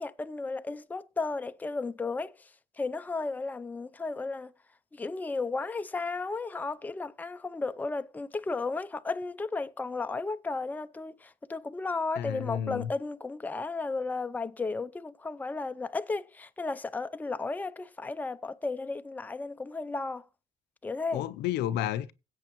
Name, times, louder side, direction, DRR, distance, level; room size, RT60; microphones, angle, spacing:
voice 1, 0.0-2.5 2.8-4.5 4.9-20.2 20.8-21.2, left 3 dB, 10° left, 0.5 m, -34 dB
voice 2, 12.2-12.9 21.1-22.1, left 11 dB, 80° left, 0.6 m, -31 dB
16.5 x 7.9 x 3.0 m
cardioid pair, 110°, 17 cm